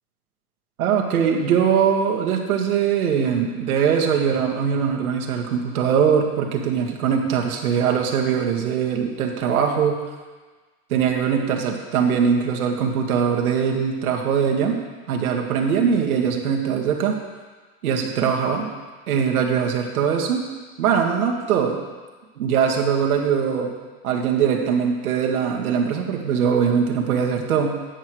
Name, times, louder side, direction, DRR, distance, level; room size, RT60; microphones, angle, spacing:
voice 1, 0.8-10.0 10.9-14.8 15.1-17.1 17.8-18.7 19.1-20.4 20.8-21.8 22.4-23.7 24.0-27.8, right 7 dB, 75° right, 1 dB, 1.8 m, -21 dB
10.0 x 8.0 x 4.7 m, 1.4 s
hypercardioid pair, 145°, 44 cm